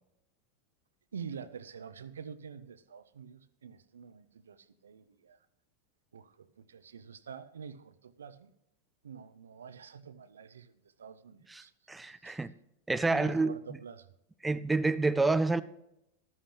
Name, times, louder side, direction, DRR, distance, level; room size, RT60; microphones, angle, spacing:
voice 1, 1.1-5.4 6.1-8.5 9.0-12.5 13.0-14.1, right 6 dB, 70° right, 0.7 m, -47 dB
voice 2, 11.5-12.5 12.9-13.5 14.4-15.6, right 3 dB, 10° right, 0.4 m, -28 dB
13.5 x 12.5 x 3.0 m
figure-of-eight pair, 90°, 0 cm